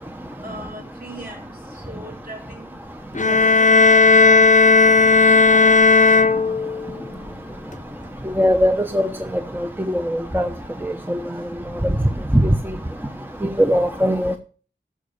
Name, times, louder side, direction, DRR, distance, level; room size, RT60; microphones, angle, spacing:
voice 1, 0.4-2.7 3.2-4.4 5.2-5.8, equal, 50° right, 4.8 m, -39 dB
sound 1, 3.1-7.0, left 4 dB, 40° left, 0.8 m, -14 dB
voice 2, 8.4-9.1 9.9-10.5 10.8-11.2 12.4-12.5 13.6-14.4, equal, 10° right, 0.9 m, -20 dB
12.0 x 6.4 x 7.0 m
wide cardioid pair, 55°, 19 cm